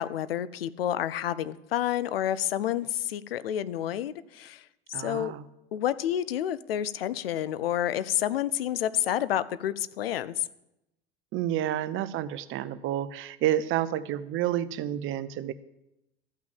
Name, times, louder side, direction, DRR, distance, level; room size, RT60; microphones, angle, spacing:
voice 1, 0.0-4.6 4.9-5.3 5.7-10.4, left 11 dB, 75° left, 17 dB, 0.6 m, -29 dB
voice 2, 4.9-5.4 11.3-15.5, right 12 dB, 45° right, 15 dB, 0.7 m, -29 dB
13.5 x 6.0 x 7.3 m, 0.89 s
figure-of-eight pair, 70°, 30 cm